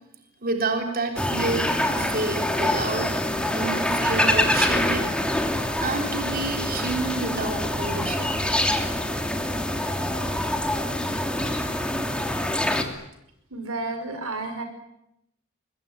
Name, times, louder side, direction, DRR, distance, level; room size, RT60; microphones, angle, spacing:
voice 1, 0.4-3.1 3.5-5.5 5.8-8.4, right 3 dB, 45° right, 4 dB, 3.8 m, -29 dB
sound 1, 1.2-12.8, left 1 dB, 5° left, 2.8 m, -25 dB
voice 2, 13.5-14.6, right 2 dB, 90° right, 7 dB, 5.5 m, -31 dB
24.5 x 22.0 x 9.9 m, 0.80 s
head